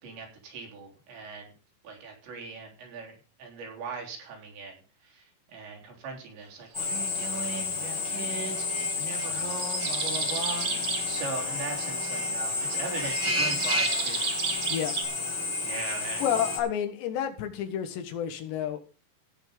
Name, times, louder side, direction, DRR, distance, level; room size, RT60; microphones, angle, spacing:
voice 1, 0.0-1.5 1.8-4.7 5.0-5.2 5.5-14.2 15.6-16.2, right 4 dB, 90° right, 0 dB, 5.8 m, -39 dB
Drill, 6.7-16.6, left 3 dB, 25° left, 0.5 m, -30 dB
sound 1, 8.6-11.1 13.0-15.0, right 7 dB, 50° right, 2.5 m, -33 dB
voice 2, 16.2-18.8, left 9 dB, 80° left, 7 dB, 3.6 m, -30 dB
17.0 x 5.9 x 5.2 m, 0.34 s
omnidirectional pair, 5.0 m